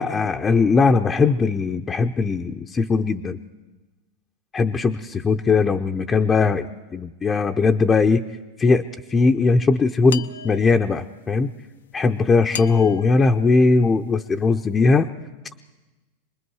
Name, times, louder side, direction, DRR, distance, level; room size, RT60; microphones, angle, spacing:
voice 1, 0.0-3.4 4.5-6.7 6.9-8.2 8.6-11.5 11.9-15.1, left 4 dB, 20° left, 4 dB, 0.7 m, -19 dB
sound 1, 10.1-11.2 12.5-14.4, left 6 dB, 85° left, 0.6 m, -37 dB
27.0 x 20.5 x 4.8 m, 1.2 s
hypercardioid pair, 110°, 0 cm